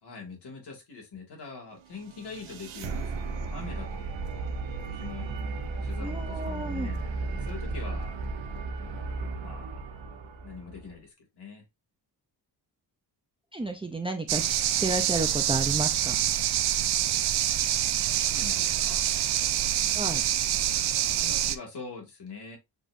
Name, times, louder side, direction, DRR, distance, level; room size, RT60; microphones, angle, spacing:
voice 1, 0.0-4.1 4.8-5.3 5.8-8.1 9.3-9.8 10.4-11.6 18.2-19.0 21.0-22.6, left 4 dB, 60° left, 2.6 m, -43 dB
sound 1, 1.8-11.0, right 3 dB, 80° right, 1.0 m, -35 dB
voice 2, 6.0-6.9 13.5-16.2 19.9-20.2, right 2 dB, 10° right, 0.5 m, -32 dB
sound 2, 14.3-21.6, right 11 dB, 60° right, 0.6 m, -26 dB
6.2 x 3.0 x 2.6 m
cardioid pair, 95°, 46 cm